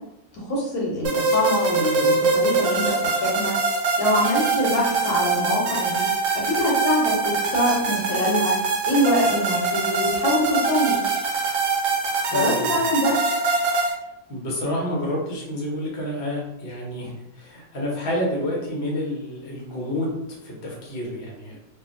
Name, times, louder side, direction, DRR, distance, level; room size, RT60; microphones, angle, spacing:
voice 1, 0.3-3.6 4.0-6.1 6.3-11.0 12.3-13.2, left 1 dB, 65° left, -3 dB, 1.1 m, -24 dB
sound 1, 1.0-13.9, right 3 dB, 75° right, 1.2 m, -23 dB
voice 2, 12.3-12.8 14.3-21.6, left 1 dB, 45° left, -3 dB, 0.8 m, -29 dB
2.6 x 2.5 x 2.5 m, 0.88 s
omnidirectional pair, 1.9 m